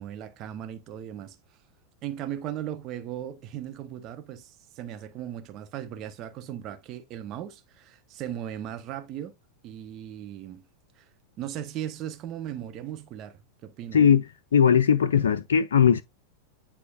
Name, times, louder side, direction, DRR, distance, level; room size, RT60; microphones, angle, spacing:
voice 1, 0.0-1.4 2.0-9.3 9.6-10.7 11.0-11.1 11.4-14.1, right 11 dB, 35° right, 1.1 m, -37 dB
voice 2, 13.9-14.2 14.5-16.0, left 7 dB, 65° left, 0.5 m, -19 dB
9.7 x 4.2 x 2.5 m
figure-of-eight pair, 90°, 0 cm